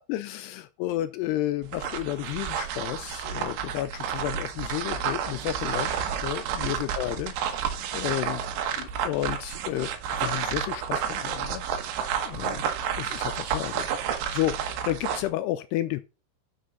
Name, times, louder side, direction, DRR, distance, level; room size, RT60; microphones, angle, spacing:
voice 1, 0.1-8.4 8.8-9.9 10.2-12.7 13.0-16.0, left 14 dB, 80° left, 2.5 m, -32 dB
sound 1, 1.6-15.3, right 8 dB, 80° right, 3.5 m, -31 dB
11.0 x 5.9 x 4.0 m
omnidirectional pair, 5.0 m